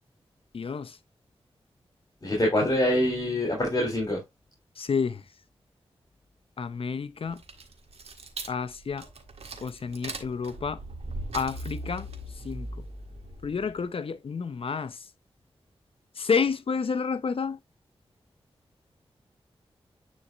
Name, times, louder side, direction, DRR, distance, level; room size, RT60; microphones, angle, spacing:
voice 1, 0.5-1.0 4.8-5.2 6.6-7.4 8.5-9.1 9.6-10.8 11.3-12.1 12.4-12.7 13.4-15.0 16.2-17.6, left 5 dB, 65° left, 0.7 m, -29 dB
voice 2, 2.2-4.2, left 1 dB, 40° left, 3.4 m, -25 dB
sound 1, 7.2-13.8, right 2 dB, 80° right, 1.6 m, -39 dB
9.9 x 4.2 x 2.4 m
wide cardioid pair, 70°, 10 cm